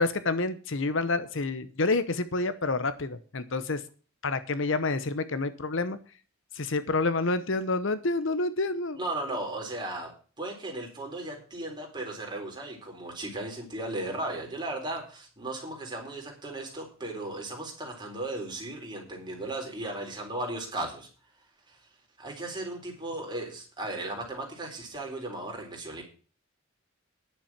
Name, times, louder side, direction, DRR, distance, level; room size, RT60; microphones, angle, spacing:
voice 1, 0.0-3.8 4.2-6.0 6.5-9.0, left 3 dB, 60° left, 13 dB, 0.9 m, -28 dB
voice 2, 8.9-21.1 21.7-21.8 22.2-26.0, right 2 dB, 20° right, 0 dB, 4.0 m, -36 dB
10.5 x 7.2 x 7.4 m, 0.38 s
head